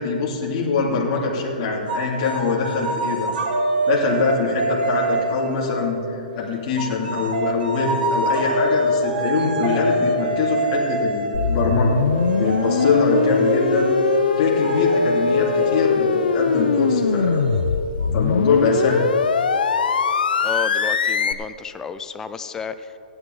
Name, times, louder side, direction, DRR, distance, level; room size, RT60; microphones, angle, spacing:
voice 1, 0.0-3.3 3.9-12.0 12.3-17.5 18.1-19.0, left 4 dB, 35° left, -5 dB, 2.6 m, -23 dB
sound 1, 1.9-5.8 6.8-18.1, right 1 dB, 80° right, 1.9 m, -25 dB
sound 2, 11.3-21.3, left 6 dB, 85° left, 0.6 m, -21 dB
voice 2, 20.4-23.0, left 5 dB, 10° left, 11 dB, 0.4 m, -31 dB
16.0 x 11.0 x 3.9 m, 2.8 s
hypercardioid pair, 150°, 5 cm